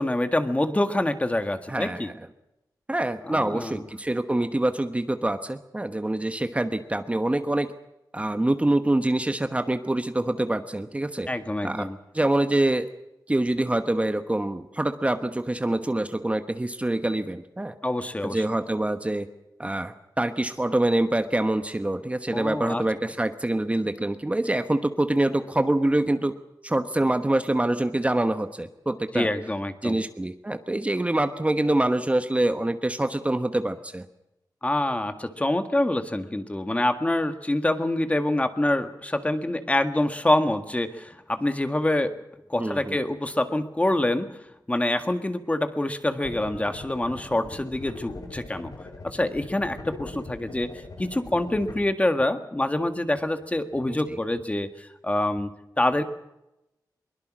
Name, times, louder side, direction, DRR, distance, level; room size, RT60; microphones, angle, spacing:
voice 1, 0.0-2.1 3.3-3.8 11.3-12.0 17.8-18.4 22.3-22.8 29.1-30.0 34.6-42.2 42.5-48.7 49.0-50.7 51.0-56.0, left 1 dB, 20° left, 8 dB, 1.7 m, -26 dB
voice 2, 1.7-2.0 2.9-7.7 8.1-11.3 11.6-11.9 12.1-12.9 13.3-17.7 18.2-19.3 19.6-26.4 26.6-29.3 29.8-34.0 42.6-43.0 53.9-54.2, right 1 dB, 20° right, 8 dB, 1.2 m, -25 dB
sound 1, 46.2-51.8, left 3 dB, 55° left, 3.8 m, -41 dB
22.5 x 22.0 x 6.2 m, 0.91 s
wide cardioid pair, 120°, 7 cm